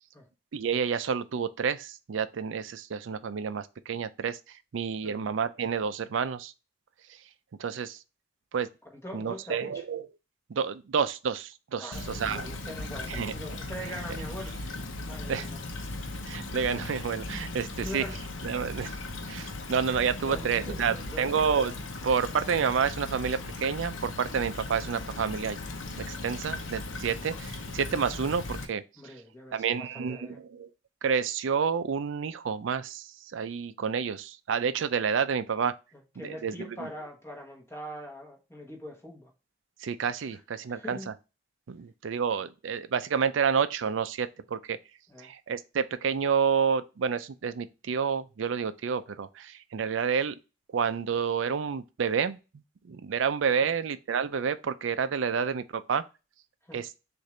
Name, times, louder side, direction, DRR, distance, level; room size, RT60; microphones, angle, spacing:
voice 1, 0.5-6.5 7.6-8.0 8.5-8.7 9.1-10.1 10.5-12.5 13.1-13.3 15.3-15.5 16.3-18.0 18.4-19.0 19.3-21.8 22.0-25.6 25.9-28.8 29.5-30.7 31.0-35.8 36.2-36.5 36.8-36.9 39.8-41.1 41.7-44.8 45.2-50.4 50.7-52.4 52.8-56.0 56.7-56.9, right 6 dB, 80° right, 0.4 m, -29 dB
voice 2, 8.9-9.8 11.8-14.5 15.1-15.6 17.8-18.2 19.6-19.7 20.2-21.3 29.0-30.4 36.2-39.3 40.3-40.4 40.7-41.1 45.1-45.3 53.6-53.7 56.6-56.8, equal, 15° left, 1.2 m, -42 dB
Stream / Trickle dribble, 11.9-28.7, left 2 dB, 85° left, 0.8 m, -38 dB
6.5 x 2.6 x 3.2 m
head